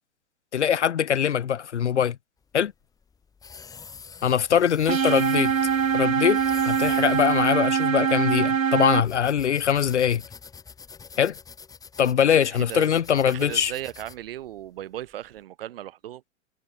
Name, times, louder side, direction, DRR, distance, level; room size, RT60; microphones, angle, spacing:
voice 1, 0.5-2.2 2.5-2.7 4.2-5.5 5.9-6.4 6.6-10.2 11.2-11.3 12.0-13.7, left 8 dB, 60° left, 1.0 m, -22 dB
sound 1, 2.4-15.4, left 5 dB, 10° left, 1.9 m, -46 dB
sound 2, 4.9-9.0, right 7 dB, 85° right, 0.6 m, -23 dB
voice 2, 12.4-12.9 13.2-16.3, right 13 dB, 45° right, 2.7 m, -37 dB
figure-of-eight pair, 115°, 38 cm